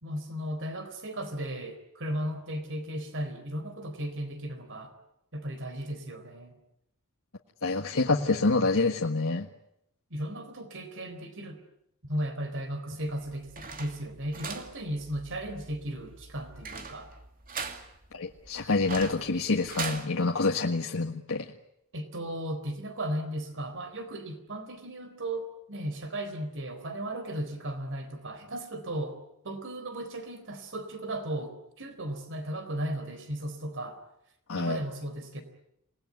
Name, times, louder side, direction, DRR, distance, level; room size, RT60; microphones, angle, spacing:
voice 1, 0.0-4.9 5.3-6.6 10.1-11.6 12.0-17.1 21.9-29.2 29.4-34.0 34.5-35.4, right 1 dB, 60° right, 9 dB, 4.0 m, -36 dB
voice 2, 7.6-9.5 18.1-21.5 34.5-34.8, left 3 dB, 65° left, 2 dB, 1.6 m, -27 dB
sound 1, 13.0-20.1, right 4 dB, 40° right, 2.5 m, -41 dB
28.5 x 19.5 x 9.6 m, 0.81 s
head